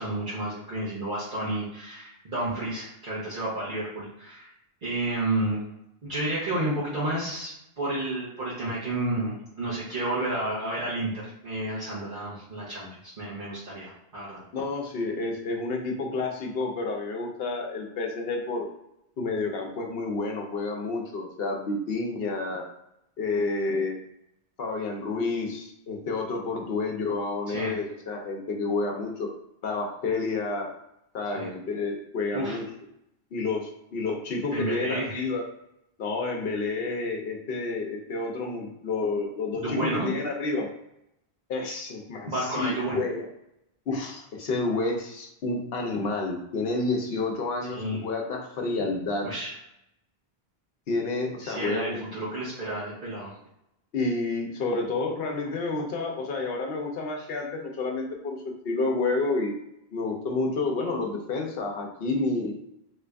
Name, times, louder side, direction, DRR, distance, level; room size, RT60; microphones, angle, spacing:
voice 1, 0.0-4.5 4.8-5.6 6.0-14.4 27.5-27.7 31.3-31.5 32.3-32.6 34.5-35.1 39.6-40.1 42.3-43.0 47.7-48.0 49.2-49.5 51.4-53.3 57.2-57.3, right 1 dB, 55° right, -9 dB, 1.1 m, -31 dB
voice 2, 14.5-18.7 19.2-22.6 23.2-24.0 24.6-29.3 29.6-30.7 31.1-32.6 33.3-35.4 36.0-40.7 41.5-43.2 43.9-49.3 50.9-52.0 53.9-58.4 58.6-59.5 59.9-62.5, left 3 dB, 70° left, 1 dB, 0.9 m, -29 dB
3.1 x 2.5 x 3.3 m, 0.82 s
omnidirectional pair, 1.1 m